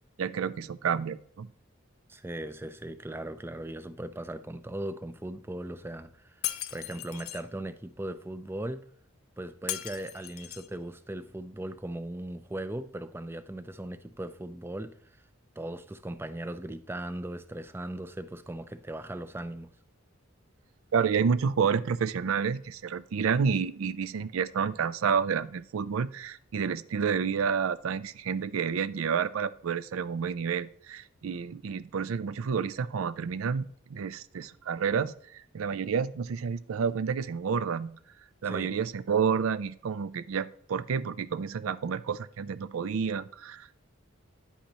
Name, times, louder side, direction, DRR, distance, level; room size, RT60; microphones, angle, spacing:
voice 1, 0.2-1.5 20.9-38.0 38.4-43.8, right 6 dB, 75° right, 0.4 m, -30 dB
voice 2, 2.1-6.4 6.7-8.9 9.4-15.0 15.6-19.7 38.4-38.7, right 1 dB, 10° right, 0.4 m, -38 dB
Shatter, 6.4-7.4 9.7-10.7, left 14 dB, 85° left, 0.5 m, -36 dB
9.9 x 8.3 x 2.9 m
head